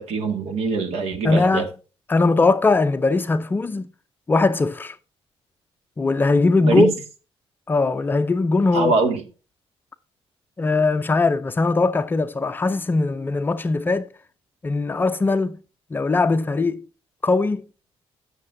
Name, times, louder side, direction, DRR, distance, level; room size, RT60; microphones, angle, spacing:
voice 1, 0.0-1.6 6.6-6.9 8.7-9.2, right 4 dB, 75° right, 1.9 m, -23 dB
voice 2, 1.2-1.7 2.1-3.9 4.3-5.0 6.0-6.9 7.7-8.9 10.6-14.1 14.6-15.6 15.9-16.8 17.2-17.7, left 3 dB, 20° left, 0.4 m, -20 dB
17.5 x 6.5 x 2.6 m
cardioid pair, 175°, 11 cm